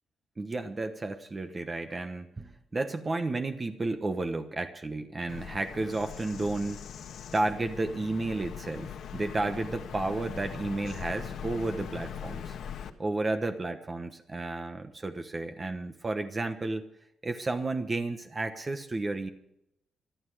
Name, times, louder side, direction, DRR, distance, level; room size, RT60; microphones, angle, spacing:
voice 1, 0.4-6.8 7.3-12.6 13.0-16.8 17.2-19.3, right 2 dB, 20° right, 7 dB, 1.1 m, -32 dB
Bird vocalization bird call bird song, 5.3-12.9, left 8 dB, 65° left, 1.5 m, -41 dB
26.0 x 9.8 x 4.8 m, 0.77 s
cardioid pair, 155°, 0 cm